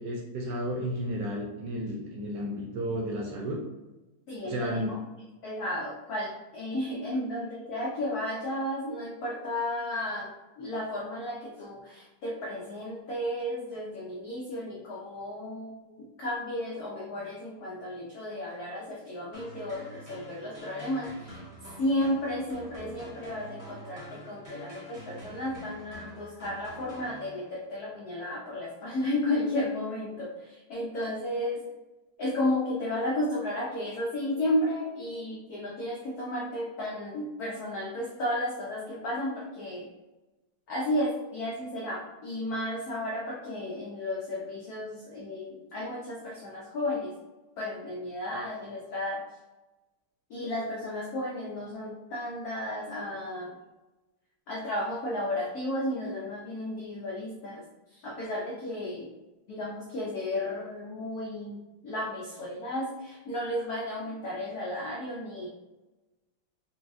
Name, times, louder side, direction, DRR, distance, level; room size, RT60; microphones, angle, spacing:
voice 1, 0.0-3.6 4.4-5.0, equal, 70° right, -1 dB, 1.1 m, -32 dB
voice 2, 4.3-5.0 5.4-21.4 21.8-31.7 32.2-39.9 40.7-47.2 47.6-49.2 50.3-53.6 54.5-57.6 57.9-59.1 59.5-65.5, left 1 dB, 85° left, -4 dB, 0.8 m, -33 dB
sound 1, 19.3-27.7, equal, 15° right, 0.6 m, -47 dB
4.2 x 2.3 x 2.5 m, 1.1 s
omnidirectional pair, 2.3 m